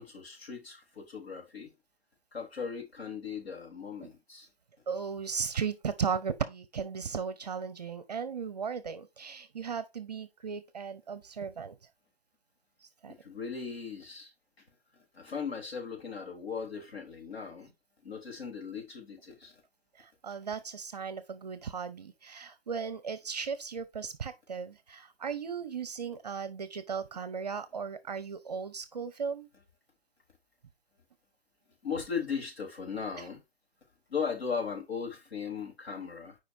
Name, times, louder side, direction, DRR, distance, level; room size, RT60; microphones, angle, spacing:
voice 1, 0.0-1.7 2.3-4.5 13.1-14.3 15.1-17.7 18.0-19.6 31.8-33.4 34.1-36.4, left 6 dB, 85° left, 3.6 m, -38 dB
voice 2, 4.9-11.7 13.0-13.1 20.0-29.5 33.2-33.3, right 6 dB, 45° right, 0.6 m, -36 dB
7.7 x 5.0 x 2.6 m
hypercardioid pair, 165°, 30 cm